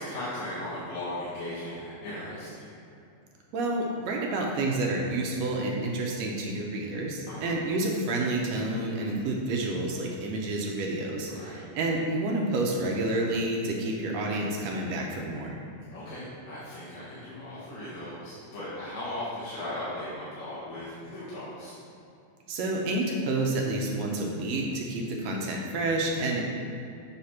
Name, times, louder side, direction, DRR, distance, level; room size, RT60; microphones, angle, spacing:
voice 1, 0.0-2.7 7.3-7.6 11.3-11.7 15.9-21.7, left 1 dB, 65° left, -11 dB, 2.6 m, -37 dB
voice 2, 3.5-15.6 22.5-26.4, right 2 dB, 75° right, -1 dB, 1.7 m, -29 dB
8.0 x 3.2 x 5.7 m, 2.6 s
omnidirectional pair, 3.6 m